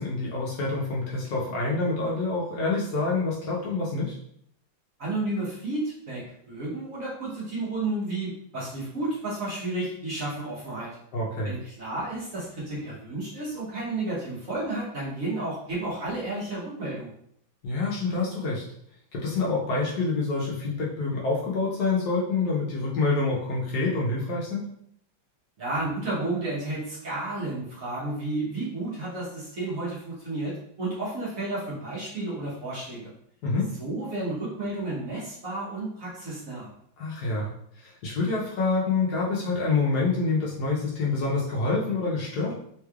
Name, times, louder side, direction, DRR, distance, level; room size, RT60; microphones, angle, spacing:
voice 1, 0.0-4.2 11.1-11.5 17.6-18.6 19.1-24.7 33.4-33.7 37.0-37.5 37.8-42.6, left 3 dB, 65° left, -4 dB, 1.1 m, -27 dB
voice 2, 5.0-10.9 11.4-17.1 25.6-33.1 33.8-36.7, right 2 dB, 50° right, -7 dB, 1.2 m, -32 dB
3.5 x 3.1 x 2.3 m, 0.70 s
omnidirectional pair, 2.1 m